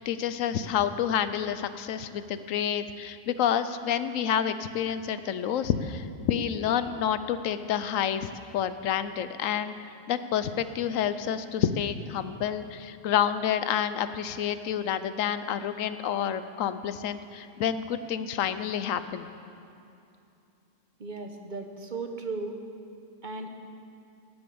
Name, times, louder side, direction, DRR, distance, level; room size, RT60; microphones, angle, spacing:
voice 1, 0.0-9.7 10.1-19.3, left 9 dB, 85° left, 12 dB, 1.0 m, -29 dB
voice 2, 21.0-22.6 23.2-23.5, right 3 dB, 40° right, 4 dB, 1.0 m, -36 dB
17.0 x 8.0 x 7.0 m, 2.7 s
omnidirectional pair, 1.3 m